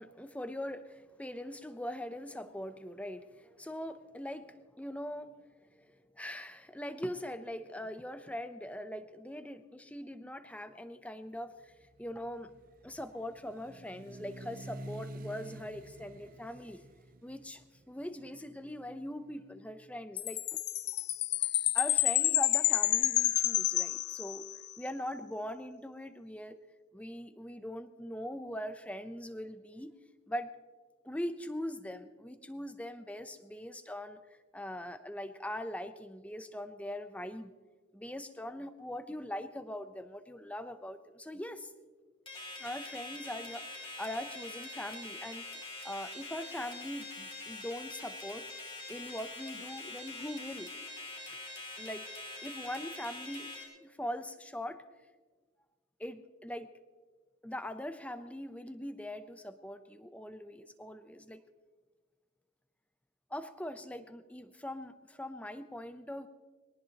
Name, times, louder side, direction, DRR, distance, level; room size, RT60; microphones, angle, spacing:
voice 1, 0.0-5.3 5.7-11.7 12.0-12.5 12.8-16.8 17.2-20.6 21.7-24.4 24.8-26.6 26.9-29.9 30.3-30.5 31.0-34.2 34.5-37.5 37.9-41.7 42.6-48.5 48.9-50.7 51.3-51.4 51.8-52.1 52.4-54.8 56.0-56.7 57.4-61.4 63.3-66.3, left 1 dB, 5° left, 10 dB, 0.6 m, -41 dB
sound 1, 11.7-19.7, right 1 dB, 40° right, 0.7 m, -50 dB
Chime, 20.2-24.7, left 15 dB, 50° left, 0.4 m, -29 dB
sound 2, 42.3-53.6, left 2 dB, 25° left, 2.6 m, -44 dB
22.5 x 18.5 x 2.9 m, 1.4 s
head